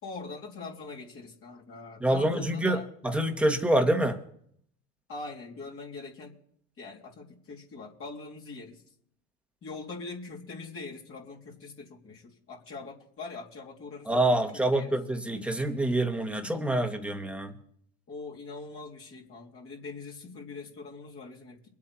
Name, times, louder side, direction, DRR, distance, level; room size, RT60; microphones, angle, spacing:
voice 1, 0.0-2.9 5.1-6.3 6.8-8.8 9.6-14.9 18.1-21.6, left 3 dB, 40° left, -3 dB, 3.6 m, -42 dB
voice 2, 2.0-4.2 14.1-17.5, right 1 dB, 5° right, 4 dB, 2.0 m, -26 dB
24.0 x 8.4 x 4.6 m, 0.67 s
supercardioid pair, 90°, 34 cm